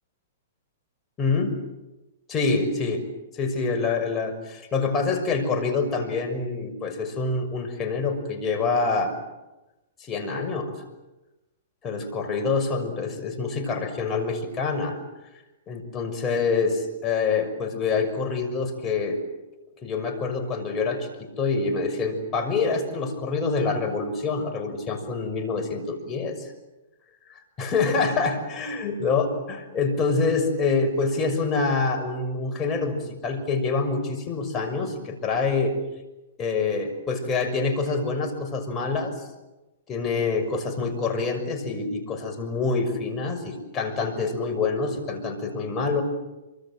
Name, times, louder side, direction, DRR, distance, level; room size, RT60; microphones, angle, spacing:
voice 1, 1.2-1.6 2.3-3.0 3.3-9.1 10.1-10.7 11.8-15.0 15.7-19.2 19.8-26.5 27.3-35.7 36.4-39.1 39.9-46.0, left 4 dB, 25° left, 5 dB, 6.2 m, -26 dB
27.5 x 25.0 x 7.7 m, 1.0 s
hypercardioid pair, 130°, 0 cm